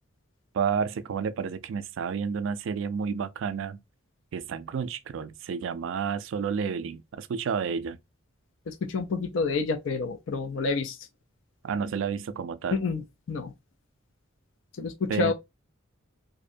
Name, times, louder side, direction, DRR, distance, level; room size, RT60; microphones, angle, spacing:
voice 1, 0.5-3.8 4.3-8.0 11.6-12.8 15.1-15.3, right 6 dB, 60° right, 0.3 m, -30 dB
voice 2, 8.7-11.1 12.7-13.0 13.3-13.5 14.8-15.3, left 4 dB, 60° left, 0.4 m, -28 dB
2.6 x 2.1 x 2.4 m
head